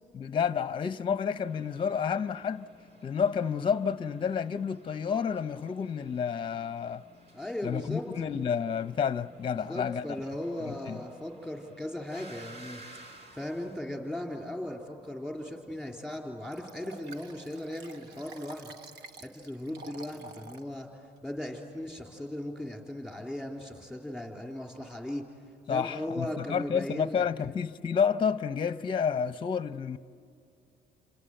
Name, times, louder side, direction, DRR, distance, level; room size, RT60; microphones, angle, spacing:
voice 1, 0.1-2.7 3.0-7.0 7.6-10.1 10.6-11.0 25.7-30.0, left 7 dB, 30° left, 0.7 m, -30 dB
sound 1, 1.4-13.8, right 1 dB, 40° right, 3.1 m, -54 dB
voice 2, 7.3-8.1 9.7-12.8 13.3-18.7 19.2-20.9 21.2-25.2 25.7-27.3, left 1 dB, 5° right, 3.5 m, -37 dB
Liquid, 16.5-20.7 21.2-21.3, right 4 dB, 80° right, 1.1 m, -49 dB
28.5 x 26.5 x 7.9 m
cardioid pair, 110°, 17 cm